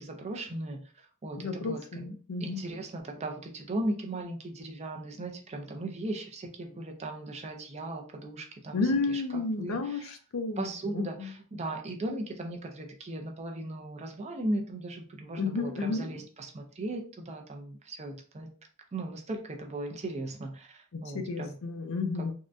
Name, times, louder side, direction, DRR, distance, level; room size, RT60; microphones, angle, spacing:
voice 1, 0.0-2.1 2.4-8.8 9.1-10.1 10.6-18.5 18.9-21.5, right 1 dB, 30° right, 3 dB, 0.5 m, -37 dB
voice 2, 1.4-2.6 8.7-11.3 15.4-16.1 20.9-22.3, left 3 dB, 65° left, 7 dB, 0.5 m, -32 dB
3.6 x 2.2 x 2.5 m, 0.40 s
head